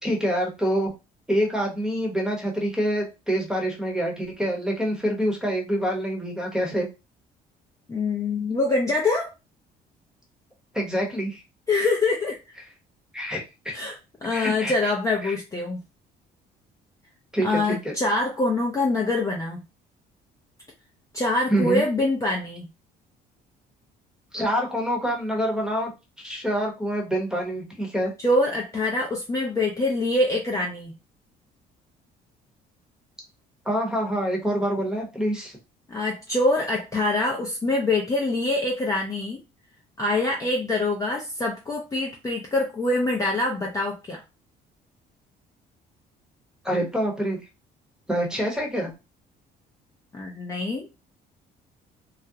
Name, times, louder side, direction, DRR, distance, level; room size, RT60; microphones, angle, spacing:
voice 1, 0.0-0.9 1.3-6.9 10.7-11.4 13.1-13.7 14.3-14.7 15.2-15.3 17.3-17.9 21.5-21.8 24.3-25.9 26.2-28.1 33.6-35.6 46.6-47.4 48.1-48.9, equal, 5° right, 0 dB, 0.8 m, -26 dB
voice 2, 7.9-9.3 11.7-12.6 13.7-15.8 17.4-19.6 21.1-22.7 28.2-31.0 35.9-39.4 40.0-44.2 50.1-50.9, left 2 dB, 20° left, -1 dB, 0.5 m, -25 dB
2.4 x 2.1 x 2.7 m, 0.27 s
cardioid pair, 110°, 17 cm